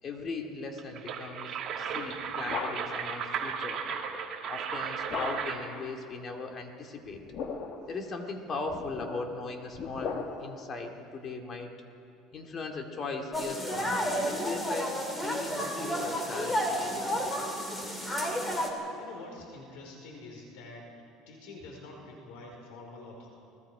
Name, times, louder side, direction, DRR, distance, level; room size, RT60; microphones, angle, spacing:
voice 1, 0.0-3.8 4.5-7.2 7.9-11.7 12.3-17.3, left 3 dB, 30° left, 3 dB, 2.3 m, -39 dB
sound 1, 0.8-5.7, right 6 dB, 35° right, 2.1 m, -35 dB
sound 2, 1.9-3.1 5.1-5.7 7.1-7.9 8.7-10.6, left 5 dB, 45° left, 1.9 m, -37 dB
sound 3, 13.3-18.7, equal, 15° left, 2.7 m, -31 dB
voice 2, 19.0-20.9 21.3-23.3, left 2 dB, 80° left, 0 dB, 4.6 m, -46 dB
29.5 x 20.0 x 5.0 m, 2.6 s
cardioid pair, 155°, 0 cm